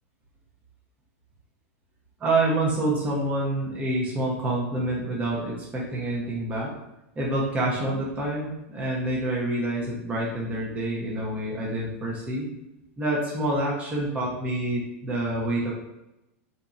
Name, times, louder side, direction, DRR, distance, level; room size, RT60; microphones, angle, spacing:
voice 1, 2.2-6.7 7.2-12.5 13.0-15.7, right 1 dB, 15° right, -5 dB, 0.7 m, -27 dB
4.0 x 2.6 x 2.4 m, 0.90 s
supercardioid pair, 140°, 8 cm